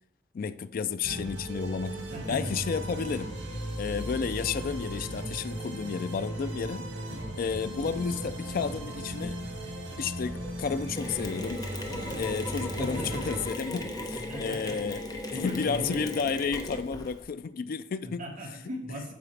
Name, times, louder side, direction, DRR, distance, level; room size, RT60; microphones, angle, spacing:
voice 1, 0.3-3.4 3.8-6.9 7.4-9.4 10.0-11.7 12.1-13.9 14.4-15.1 15.3-18.2, left 6 dB, 50° left, 0.3 m, -32 dB
sound 1, 1.0-13.5, right 1 dB, 80° right, 2.0 m, -37 dB
voice 2, 2.1-2.5 12.8-13.4 13.9-15.0 15.3-16.1 18.0-19.1, equal, 45° right, 1.6 m, -38 dB
Mechanisms, 11.0-17.2, left 1 dB, 20° left, 0.8 m, -37 dB
8.6 x 7.0 x 3.3 m
head